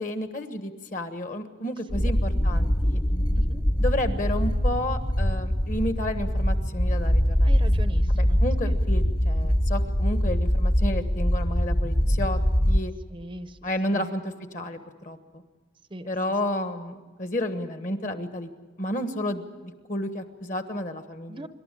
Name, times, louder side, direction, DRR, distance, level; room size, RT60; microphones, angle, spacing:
voice 1, 0.0-3.0 3.8-7.5 8.2-12.4 12.7-12.9 13.6-15.2 16.1-18.5 18.8-21.5, left 1 dB, 40° left, 8 dB, 1.3 m, -31 dB
sound 1, 1.9-12.8, equal, 20° left, 0.6 m, -23 dB
voice 2, 7.4-8.4 8.7-8.8 13.1-13.6 13.9-14.1 15.9-16.1 21.3-21.5, right 1 dB, 25° right, 11 dB, 0.7 m, -40 dB
26.5 x 12.5 x 10.0 m, 1.3 s
head